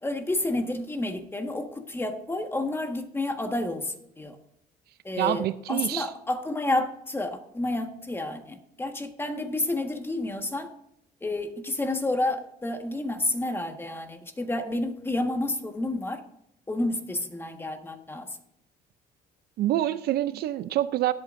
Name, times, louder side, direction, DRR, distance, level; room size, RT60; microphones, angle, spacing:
voice 1, 0.0-4.4 5.0-10.7 11.2-16.2 16.7-18.4, left 2 dB, 15° left, 6 dB, 1.5 m, -30 dB
voice 2, 5.2-6.1 19.6-21.1, right 13 dB, 70° right, 14 dB, 0.6 m, -26 dB
18.0 x 8.5 x 2.6 m, 0.76 s
cardioid pair, 110°, 17 cm